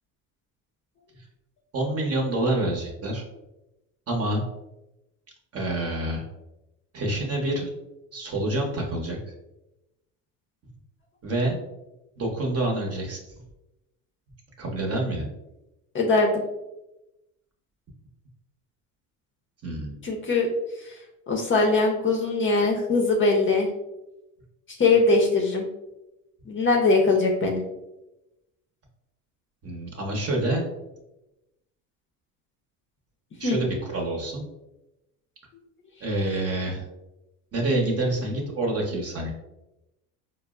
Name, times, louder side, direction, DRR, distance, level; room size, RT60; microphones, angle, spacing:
voice 1, 1.7-3.2 4.1-4.4 5.5-6.2 6.9-7.7 8.1-9.3 11.2-11.6 12.2-13.2 14.6-15.3 19.6-19.9 29.6-30.7 33.4-34.4 36.0-36.9 37.5-39.3, right 1 dB, 35° right, 1 dB, 0.9 m, -27 dB
voice 2, 15.9-16.4 20.0-20.5 20.8-20.9 21.3-23.7 24.7-25.7 26.5-27.6 33.4-33.6, left 3 dB, 30° left, 1 dB, 0.6 m, -21 dB
4.2 x 2.0 x 2.3 m, 0.94 s
supercardioid pair, 90°, 41 cm